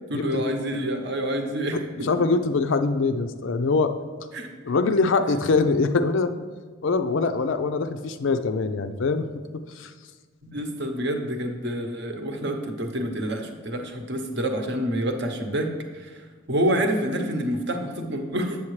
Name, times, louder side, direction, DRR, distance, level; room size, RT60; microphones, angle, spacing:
voice 1, 0.1-2.1 4.3-4.5 10.4-18.6, equal, 55° right, 4 dB, 0.9 m, -28 dB
voice 2, 2.0-3.9 4.7-6.3 6.8-9.3 9.8-9.9, left 4 dB, 60° left, 8 dB, 0.4 m, -23 dB
8.2 x 7.2 x 3.2 m, 1.5 s
head